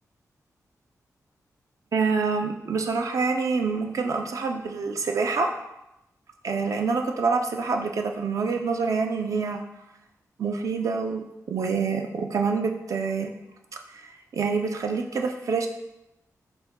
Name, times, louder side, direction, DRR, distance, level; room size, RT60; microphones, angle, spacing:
voice 1, 1.9-5.5 6.4-9.6 10.4-13.3 14.3-15.7, right 4 dB, 60° right, 4 dB, 0.4 m, -26 dB
4.5 x 2.2 x 4.0 m, 0.88 s
cardioid pair, 80°, 6 cm